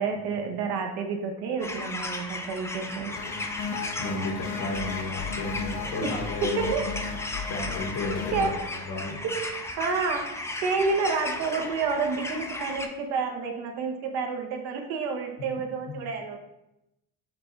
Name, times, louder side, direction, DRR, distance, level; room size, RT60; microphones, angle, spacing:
voice 1, 0.0-3.2 6.0-6.9 8.3-8.7 9.2-16.4, right 4 dB, 75° right, 3 dB, 0.8 m, -29 dB
sound 1, 1.6-12.9, left 2 dB, 10° left, 0.3 m, -36 dB
sound 2, 3.1-8.5, left 6 dB, 85° left, 0.7 m, -36 dB
voice 2, 3.7-6.9 7.5-8.5 8.8-9.2, left 2 dB, 70° left, -1 dB, 1.1 m, -33 dB
5.9 x 2.3 x 3.8 m, 0.89 s
supercardioid pair, 90°, 39 cm